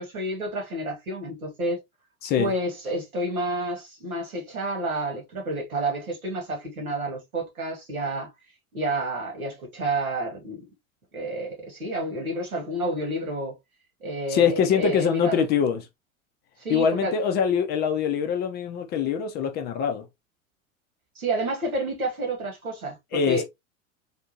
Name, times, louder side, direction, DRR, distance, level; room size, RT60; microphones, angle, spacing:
voice 1, 0.0-1.8 2.4-8.3 8.7-10.6 11.1-13.5 14.0-15.4 16.6-17.1 21.1-23.4, right 1 dB, 85° right, 1.6 m, -30 dB
voice 2, 14.3-15.8 16.7-20.0 23.1-23.4, left 7 dB, 25° left, 0.4 m, -23 dB
3.5 x 2.6 x 2.7 m
figure-of-eight pair, 85°, 42 cm